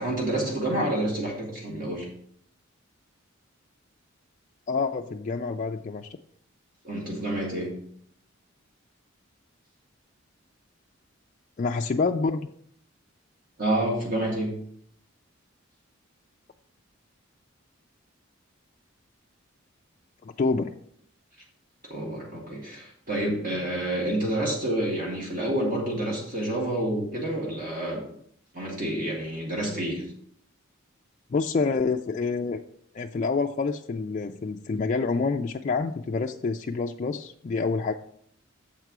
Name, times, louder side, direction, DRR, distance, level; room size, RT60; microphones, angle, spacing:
voice 1, 0.0-2.1 6.8-7.7 13.6-14.5 21.9-28.0 28.5-30.0, right 1 dB, 40° right, -3 dB, 1.8 m, -28 dB
voice 2, 4.7-6.1 11.6-12.5 20.2-20.8 31.3-32.6 32.9-37.9, left 4 dB, 35° left, 3 dB, 0.3 m, -27 dB
7.3 x 4.6 x 6.0 m, 0.65 s
head